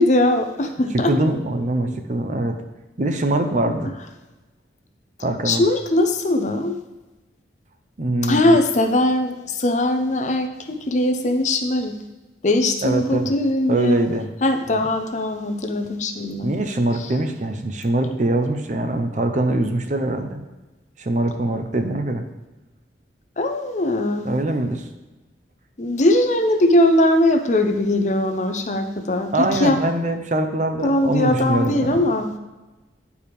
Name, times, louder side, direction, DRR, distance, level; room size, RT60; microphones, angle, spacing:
voice 1, 0.0-1.1 5.4-6.8 8.2-12.0 12.4-14.0 14.4-16.5 17.0-17.1 23.4-24.3 25.8-29.8 30.8-32.3, left 1 dB, 40° left, 7 dB, 0.6 m, -20 dB
voice 2, 0.9-2.6 3.0-3.9 5.2-5.6 8.0-8.6 12.8-13.3 13.7-14.3 14.7-14.9 16.4-20.4 21.0-22.3 24.2-24.8 29.3-32.0, right 1 dB, 40° right, 6 dB, 0.6 m, -23 dB
10.0 x 4.7 x 3.4 m, 1.1 s
head